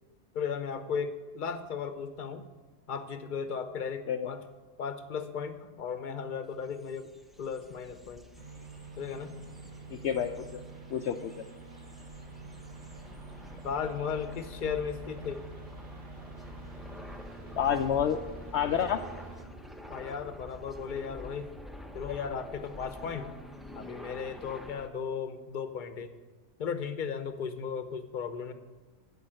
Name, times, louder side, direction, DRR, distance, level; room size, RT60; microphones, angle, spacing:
voice 1, 0.3-2.4 2.9-4.4 4.8-7.1 7.4-8.3 9.0-9.3 13.6-15.4 19.9-21.5 21.9-23.3 23.8-26.1 26.6-28.5, left 6 dB, 45° left, 9 dB, 0.9 m, -35 dB
sound 1, 6.5-24.9, left 1 dB, ahead, 0.5 m, -47 dB
sound 2, 8.4-19.4, right 5 dB, 55° right, 2.0 m, -48 dB
voice 2, 9.9-10.6 10.9-11.3 17.6-18.2 18.5-19.0, left 8 dB, 65° left, 5 dB, 0.8 m, -28 dB
10.5 x 7.0 x 9.0 m, 1.3 s
omnidirectional pair, 1.3 m